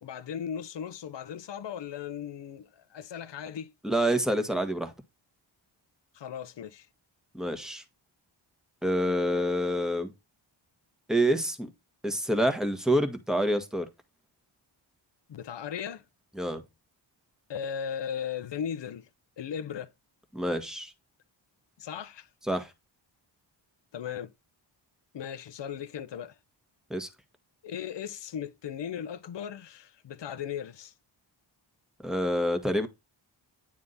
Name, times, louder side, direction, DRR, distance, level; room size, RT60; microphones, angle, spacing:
voice 1, 0.0-3.7 6.1-6.9 15.3-16.0 17.5-19.1 19.4-19.9 21.8-22.3 23.9-24.3 25.1-26.4 27.6-30.9, left 8 dB, 60° left, 0.9 m, -37 dB
voice 2, 3.8-4.9 7.3-7.8 8.8-10.1 11.1-11.7 12.0-13.9 16.4-16.6 20.3-20.9 22.5-22.7 26.9-27.1 32.0-32.9, equal, ahead, 1.6 m, -27 dB
9.6 x 3.6 x 4.1 m
cardioid pair, 70°, 47 cm